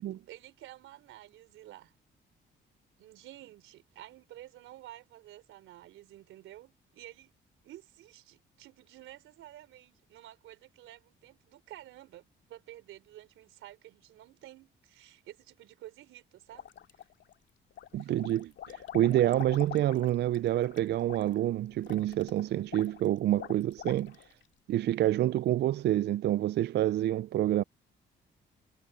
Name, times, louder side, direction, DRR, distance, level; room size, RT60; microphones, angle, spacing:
voice 1, 0.3-1.9 3.0-7.3 7.6-17.1 18.0-18.1, right 14 dB, 85° right, 4.0 m, -51 dB
sound 1, 16.5-17.3 17.7-24.4, left 10 dB, 70° left, 2.3 m, -45 dB
voice 2, 17.9-24.2 24.7-27.6, right 13 dB, 60° right, 0.4 m, -28 dB
cardioid pair, 90°, 20 cm